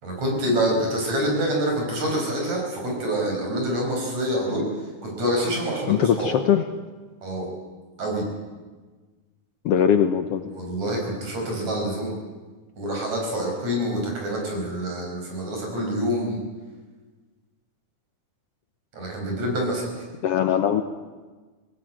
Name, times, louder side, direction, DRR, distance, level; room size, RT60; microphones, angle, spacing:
voice 1, 0.0-6.3 7.2-7.5 8.0-8.3 10.5-12.2 12.8-16.4 18.9-20.0, equal, 65° right, 0 dB, 6.8 m, -26 dB
voice 2, 5.9-6.6 9.7-10.4 20.2-20.8, left 9 dB, 65° left, 8 dB, 1.6 m, -20 dB
20.0 x 17.5 x 9.0 m, 1.3 s
omnidirectional pair, 3.4 m